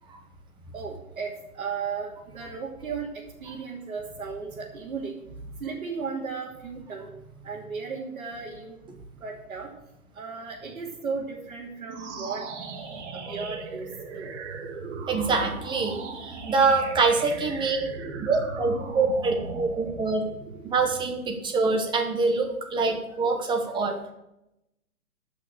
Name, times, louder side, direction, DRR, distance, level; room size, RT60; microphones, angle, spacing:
voice 1, 0.7-5.2 5.6-7.1 7.4-8.8 9.2-9.7 10.1-13.9 14.1-14.3 18.9-19.0 19.8-19.9, right 5 dB, 65° right, -5 dB, 3.0 m, -35 dB
sound 1, 11.8-21.3, right 4 dB, 50° right, 2.4 m, -38 dB
voice 2, 15.1-17.9 18.2-20.2 20.6-23.9, right 4 dB, 10° right, 3 dB, 1.0 m, -25 dB
12.0 x 6.0 x 7.8 m, 0.89 s
hypercardioid pair, 135°, 44 cm